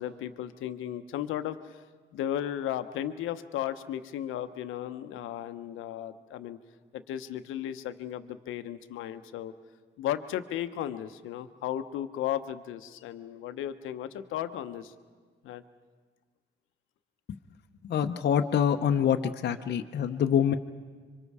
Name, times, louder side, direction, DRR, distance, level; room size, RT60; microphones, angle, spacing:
voice 1, 0.0-1.8 2.1-6.6 6.9-9.5 10.0-14.9 15.4-15.6, left 11 dB, 90° left, 10 dB, 0.9 m, -35 dB
voice 2, 17.8-20.5, left 8 dB, 55° left, 5 dB, 0.8 m, -25 dB
26.5 x 24.5 x 4.8 m, 1.5 s
cardioid pair, 90°, 20 cm